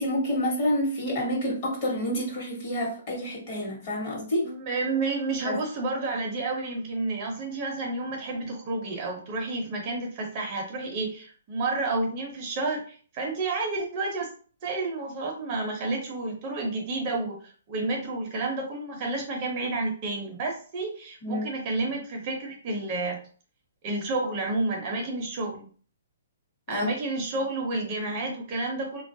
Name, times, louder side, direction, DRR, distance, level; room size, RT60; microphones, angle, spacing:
voice 1, 0.0-4.5 5.4-5.6 11.0-11.1 21.2-21.5 26.7-26.9, equal, 35° left, -3 dB, 1.1 m, -28 dB
voice 2, 4.4-14.3 14.6-23.2 23.8-25.7 26.7-29.0, right 2 dB, 30° right, 0 dB, 0.6 m, -30 dB
3.0 x 2.3 x 2.6 m, 0.43 s
hypercardioid pair, 165°, 0 cm